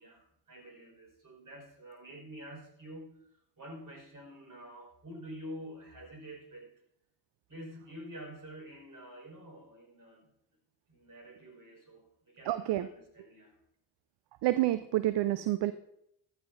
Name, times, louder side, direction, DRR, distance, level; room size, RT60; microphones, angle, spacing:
voice 1, 0.0-6.7 7.5-10.3 10.9-13.5, equal, 40° right, 1 dB, 5.4 m, -48 dB
voice 2, 12.4-12.9 14.4-15.7, right 15 dB, 60° right, 13 dB, 0.6 m, -28 dB
15.0 x 12.0 x 2.7 m, 0.77 s
hypercardioid pair, 50°, 48 cm